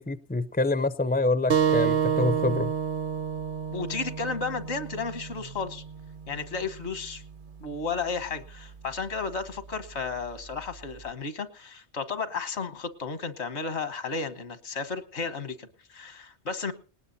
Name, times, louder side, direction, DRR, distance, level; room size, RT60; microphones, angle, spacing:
voice 1, 0.0-2.7, left 2 dB, 15° left, 15 dB, 0.4 m, -26 dB
sound 1, 1.5-6.6, right 8 dB, 55° right, 0.9 m, -29 dB
voice 2, 3.7-5.8 6.3-7.2 7.6-16.7, left 4 dB, 80° left, 12 dB, 1.5 m, -33 dB
20.0 x 19.0 x 2.7 m, 0.38 s
omnidirectional pair, 1.1 m